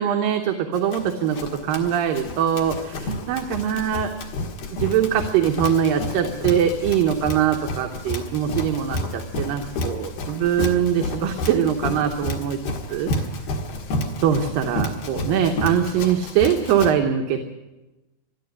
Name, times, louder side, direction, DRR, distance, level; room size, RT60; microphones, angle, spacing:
voice 1, 0.0-4.1 4.8-12.6 12.9-13.1 14.2-17.4, right 9 dB, 75° right, 4 dB, 2.7 m, -22 dB
Run, 0.7-16.9, left 1 dB, 85° left, 3.6 m, -30 dB
20.5 x 13.0 x 9.7 m, 1.1 s
omnidirectional pair, 4.2 m